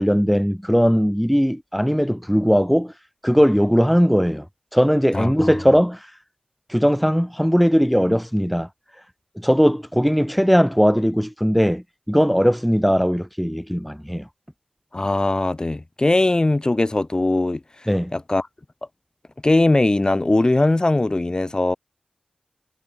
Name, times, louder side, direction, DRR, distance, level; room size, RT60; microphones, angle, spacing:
voice 1, 0.0-2.9 3.2-4.4 4.7-6.1 6.7-8.7 9.4-11.8 12.1-14.2 17.9-18.1, equal, ahead, 1.8 m, -19 dB
voice 2, 5.1-5.5 14.9-17.6 18.1-18.5 19.4-21.8, left 2 dB, 30° left, 2.8 m, -20 dB
wide cardioid pair, 75°, 3 cm